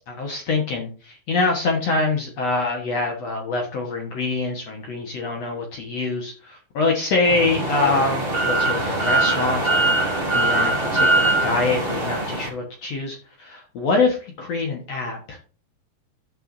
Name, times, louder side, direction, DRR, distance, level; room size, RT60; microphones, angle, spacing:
voice 1, 0.1-15.4, left 3 dB, 75° left, 1 dB, 1.5 m, -25 dB
sound 1, 7.2-12.5, right 2 dB, 20° right, 1.7 m, -22 dB
13.5 x 6.1 x 2.7 m, 0.37 s
omnidirectional pair, 5.1 m